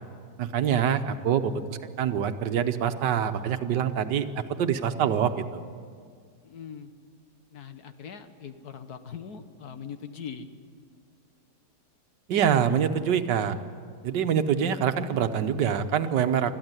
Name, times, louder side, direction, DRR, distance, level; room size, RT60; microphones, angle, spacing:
voice 1, 0.4-4.3 4.6-5.6 12.3-13.5 14.0-16.5, right 8 dB, 80° right, 9 dB, 1.6 m, -25 dB
voice 2, 6.4-6.9 7.5-10.5, left 7 dB, 65° left, 9 dB, 1.5 m, -41 dB
21.0 x 14.0 x 9.7 m, 2.1 s
omnidirectional pair, 1.9 m